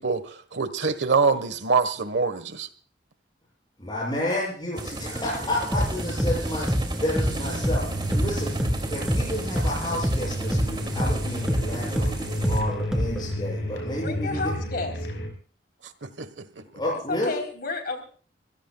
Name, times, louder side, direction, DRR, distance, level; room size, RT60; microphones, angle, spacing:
voice 1, 0.0-2.7 16.0-16.6, right 4 dB, 75° right, 12 dB, 1.5 m, -25 dB
voice 2, 3.8-6.7 7.0-8.6 8.9-12.1 12.5-14.5 16.7-17.4, left 1 dB, 25° left, -5 dB, 7.7 m, -30 dB
sound 1, 4.7-12.6, right 2 dB, 25° right, 2.6 m, -34 dB
sound 2, 5.7-13.4, equal, 5° right, 3.5 m, -27 dB
sound 3, 7.3-15.3, equal, 80° left, 5.3 m, -33 dB
voice 3, 14.0-15.1 17.1-18.0, left 3 dB, 60° left, 5 dB, 3.9 m, -31 dB
27.0 x 16.5 x 2.4 m, 0.41 s
head